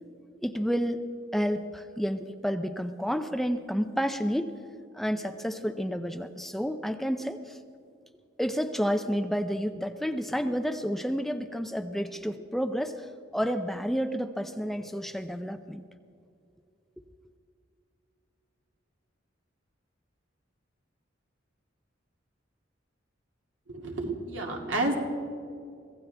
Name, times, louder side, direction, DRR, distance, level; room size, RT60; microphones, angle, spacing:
voice 1, 0.4-1.0 1.3-4.5 4.9-7.6 8.4-15.8, equal, ahead, 8 dB, 0.5 m, -30 dB
voice 2, 23.7-24.9, right 2 dB, 80° right, 1 dB, 2.3 m, -30 dB
24.5 x 16.5 x 3.4 m, 2.4 s
head